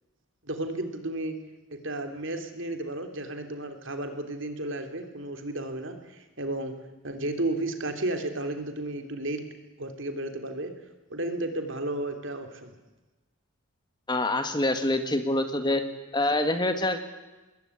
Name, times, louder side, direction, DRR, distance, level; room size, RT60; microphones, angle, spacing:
voice 1, 0.4-1.4 1.7-6.7 7.0-9.4 9.8-10.7 11.1-12.7, right 1 dB, 55° right, 6 dB, 3.3 m, -33 dB
voice 2, 14.1-15.8 16.1-17.1, left 1 dB, 20° left, 8 dB, 1.9 m, -26 dB
26.0 x 21.0 x 10.0 m, 1.1 s
head